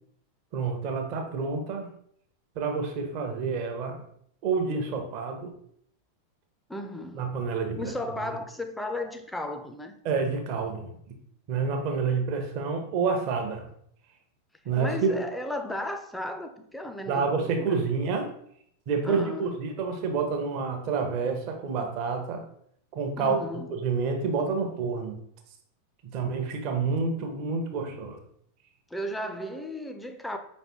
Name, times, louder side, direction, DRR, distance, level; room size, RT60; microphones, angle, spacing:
voice 1, 0.5-1.9 2.6-4.0 4.4-5.5 7.1-8.3 10.0-10.9 11.5-13.6 14.6-15.2 17.1-18.3 18.9-22.4 22.9-23.4 23.7-25.2 26.1-28.2, right 5 dB, 40° right, 0.8 m, -28 dB
voice 2, 6.7-7.3 7.7-9.9 14.8-17.8 19.0-19.6 23.2-23.7 28.9-30.4, left 1 dB, 5° left, 0.5 m, -35 dB
5.0 x 3.2 x 3.0 m
figure-of-eight pair, 90°, 0 cm